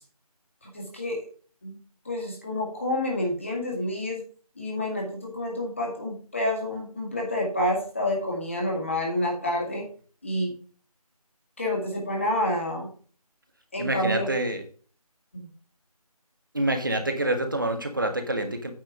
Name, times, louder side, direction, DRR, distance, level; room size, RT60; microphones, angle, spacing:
voice 1, 0.6-1.2 1.6-1.8 2.1-4.2 4.6-9.9 10.2-10.5 11.6-12.9 13.7-14.3 15.3-15.5, left 1 dB, 20° left, -1 dB, 2.1 m, -28 dB
voice 2, 13.8-14.6 16.5-18.7, right 1 dB, 35° right, 6 dB, 1.6 m, -27 dB
9.2 x 4.7 x 7.4 m, 0.41 s
figure-of-eight pair, 175°, 19 cm